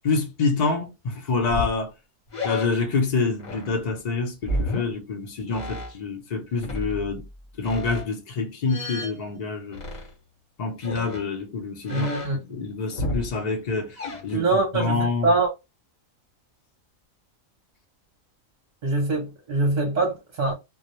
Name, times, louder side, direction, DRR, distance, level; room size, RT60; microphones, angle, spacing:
voice 1, 0.0-1.9 2.4-7.2 7.6-9.8 10.6-12.1 12.5-14.0 14.2-14.4 14.7-15.3, left 4 dB, 70° left, 0.4 m, -27 dB
sound 1, 1.4-1.8 2.3-2.8 3.4-3.8 4.4-4.9 5.5-5.9 6.6-7.3 7.6-8.1 8.7-9.2 9.7-10.1 10.8-11.3 11.9-12.6 12.9-13.4 14.0-14.7, left 1 dB, 35° left, 0.8 m, -32 dB
voice 2, 11.9-12.4 14.3-15.5 18.8-20.5, right 3 dB, 40° right, 0.7 m, -23 dB
2.2 x 2.0 x 2.9 m
omnidirectional pair, 1.4 m